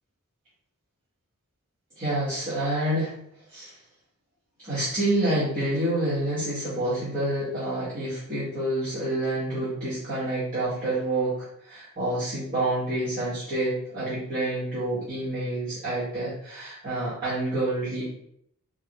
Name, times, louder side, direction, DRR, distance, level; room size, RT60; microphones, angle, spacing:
voice 1, 1.9-3.1 3.5-3.7 4.6-18.1, right 1 dB, 40° right, -12 dB, 1.3 m, -28 dB
5.1 x 2.1 x 2.9 m, 0.70 s
head